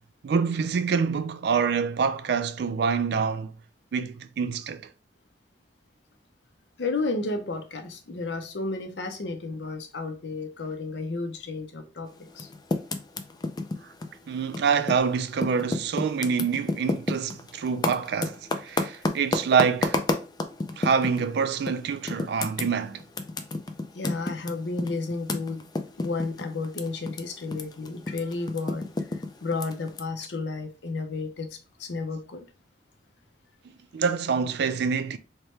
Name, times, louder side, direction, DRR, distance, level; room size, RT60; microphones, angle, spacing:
voice 1, 0.2-3.5 3.9-4.8 14.3-20.0 20.8-23.0 33.9-35.2, right 6 dB, 65° right, 0.4 m, -26 dB
voice 2, 6.8-12.5 23.9-25.7 26.0-32.5, left 3 dB, 75° left, 0.7 m, -32 dB
Typing, 12.3-15.1 15.4-21.2 21.7-21.8 22.1-27.2 27.5-30.0, left 2 dB, 25° left, 0.4 m, -30 dB
4.5 x 2.2 x 3.2 m
head